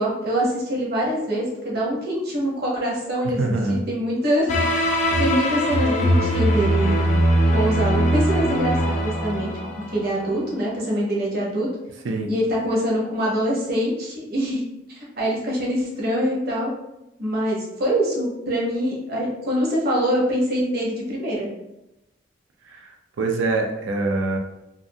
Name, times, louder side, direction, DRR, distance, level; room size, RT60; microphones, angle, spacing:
voice 1, 0.0-4.5 5.2-7.1 7.5-9.5 9.9-11.7 12.3-14.6 15.2-16.7 17.2-21.5, equal, 55° right, -4 dB, 0.8 m, -24 dB
voice 2, 3.4-3.8 12.0-12.3 22.7-24.4, right 2 dB, 80° right, 2 dB, 0.4 m, -24 dB
sound 1, 4.5-10.3, equal, 40° left, 0.3 m, -21 dB
2.5 x 2.4 x 2.6 m, 0.91 s
head